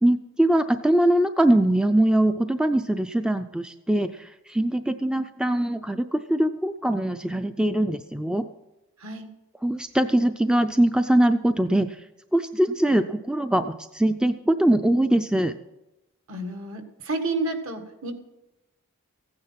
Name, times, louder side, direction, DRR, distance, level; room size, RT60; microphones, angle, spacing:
voice 1, 0.0-8.4 9.6-12.0 12.3-15.5, right 1 dB, 5° right, 9 dB, 0.3 m, -22 dB
voice 2, 16.3-18.1, right 2 dB, 70° right, 6 dB, 1.9 m, -30 dB
15.5 x 9.7 x 5.8 m, 0.98 s
head